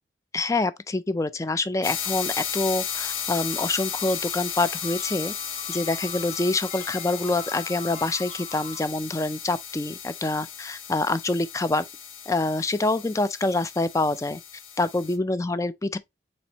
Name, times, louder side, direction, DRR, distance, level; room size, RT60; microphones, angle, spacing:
voice 1, 0.3-5.3 5.7-11.9 12.3-14.4 14.8-16.0, left 2 dB, 15° left, 0.3 m, -26 dB
sound 1, 1.8-15.2, left 8 dB, 85° left, 1.1 m, -35 dB
sound 2, 2.9-8.8, left 4 dB, 40° left, 1.0 m, -43 dB
4.3 x 4.3 x 2.9 m
head